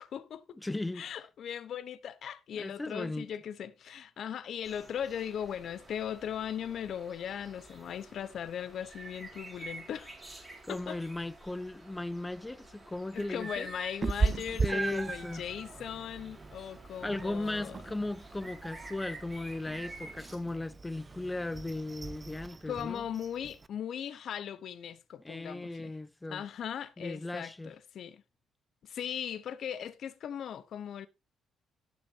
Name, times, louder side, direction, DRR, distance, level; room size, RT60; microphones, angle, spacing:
voice 1, 0.0-0.6 0.9-10.1 10.7-11.0 13.1-17.8 22.7-25.9 26.3-28.2 28.8-31.1, left 9 dB, 65° left, 1.0 m, -39 dB
voice 2, 0.6-1.1 2.6-3.3 10.7-13.7 14.6-15.4 17.0-23.1 25.2-26.4 27.0-27.7, left 2 dB, 15° left, 0.7 m, -37 dB
sound 1, 4.6-20.4, right 2 dB, 15° right, 5.3 m, -50 dB
Meow, 14.0-23.7, right 4 dB, 30° right, 0.6 m, -37 dB
18.0 x 6.0 x 2.8 m
cardioid pair, 90°, 0 cm